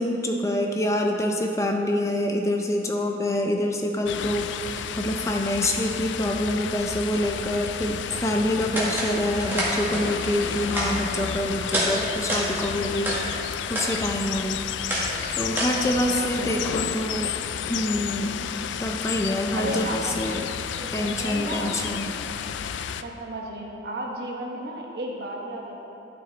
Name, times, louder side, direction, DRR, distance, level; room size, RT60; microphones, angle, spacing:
voice 1, 0.0-14.6 15.3-17.3 17.7-18.4 18.8-20.5 20.9-22.1, left 1 dB, 15° left, 2 dB, 0.4 m, -26 dB
sound 1, 4.1-23.0, left 8 dB, 80° left, 0.3 m, -31 dB
sound 2, 8.7-9.1 9.4-10.0 10.4-11.3 11.7-11.9 12.2-13.2 13.6-13.9 14.2-16.1, right 1 dB, 10° right, 1.6 m, -28 dB
voice 2, 15.8-16.7 19.5-20.1 20.8-21.8 23.0-25.8, right 1 dB, 60° right, -1 dB, 1.2 m, -34 dB
11.5 x 6.2 x 4.0 m, 2.8 s
head